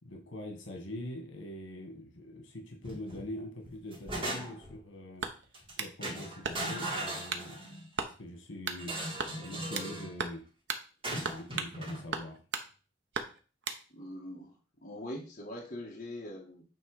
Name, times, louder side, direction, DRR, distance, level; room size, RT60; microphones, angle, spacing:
voice 1, 0.0-5.3 5.8-7.6 8.0-9.0 9.3-10.5 11.2-12.4, left 1 dB, 80° left, 2 dB, 1.7 m, -43 dB
sound 1, 2.8-3.3 3.6-4.8 5.5-5.7 6.0-7.9 8.8-10.1 11.0-12.0, right 1 dB, 25° right, 2.0 m, -38 dB
sound 2, 5.2-6.0 6.4-6.9 7.3-7.5 8.0-8.2 8.7-8.8 9.2-9.9 10.2-10.4 10.7-10.9 11.2-11.8 12.1-12.7 13.1-13.8, right 5 dB, 65° right, 0.8 m, -36 dB
voice 2, 13.9-14.5 14.8-16.6, left 1 dB, 40° left, -3 dB, 1.8 m, -42 dB
8.9 x 3.3 x 5.0 m, 0.36 s
head